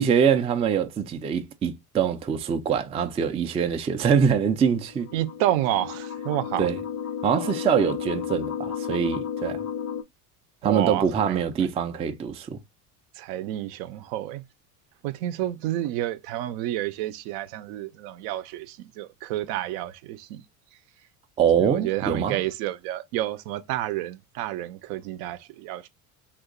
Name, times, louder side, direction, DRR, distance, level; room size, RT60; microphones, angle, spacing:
voice 1, 0.0-5.1 6.6-6.8 7.2-9.6 10.6-12.6 21.4-22.4, right 7 dB, 15° right, 0.3 m, -24 dB
sound 1, 4.7-10.0, left 8 dB, 45° left, 0.5 m, -33 dB
voice 2, 5.1-6.7 10.6-11.4 13.2-14.4 15.0-20.4 21.6-25.9, right 14 dB, 60° right, 0.6 m, -30 dB
2.8 x 2.5 x 3.6 m
hypercardioid pair, 80°, 46 cm